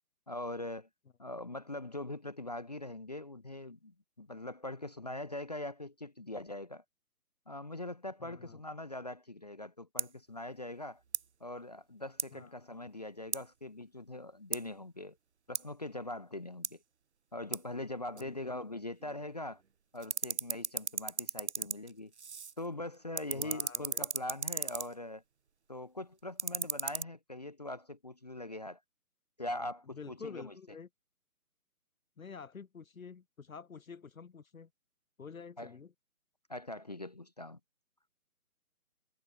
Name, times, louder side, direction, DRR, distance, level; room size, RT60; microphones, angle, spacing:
voice 1, 0.3-0.9 1.2-6.8 7.5-11.0 11.4-15.2 15.5-16.8 17.3-19.6 19.9-22.1 22.6-25.2 25.7-28.8 29.4-30.5 35.6-35.7 36.5-37.6, left 1 dB, 30° left, 0.7 m, -42 dB
voice 2, 8.2-8.6 12.3-12.5 18.2-18.4 23.3-24.1 29.9-30.9 32.2-34.7 35.2-35.9, left 5 dB, 65° left, 1.9 m, -48 dB
sound 1, 10.0-10.1 11.0-11.3 12.2-12.3 13.3-13.5 14.5-14.7 15.5-15.7 16.6-16.8 17.5-17.6 18.2-18.3 19.0-19.7 20.0-22.7 22.9-24.9 26.2-27.0, right 6 dB, 50° right, 0.5 m, -37 dB
hypercardioid pair, 170°, 45 cm